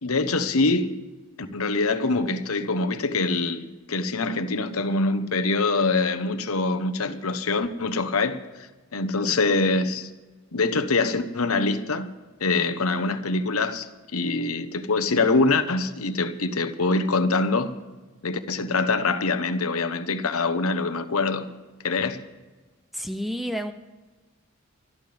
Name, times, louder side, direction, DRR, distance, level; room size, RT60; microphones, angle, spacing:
voice 1, 0.0-0.9 1.5-10.1 10.5-12.1 12.4-17.7 18.2-21.5 21.8-22.2, left 3 dB, 80° left, 1.0 m, -24 dB
voice 2, 22.9-23.7, equal, ahead, 0.5 m, -30 dB
25.5 x 12.5 x 3.5 m
head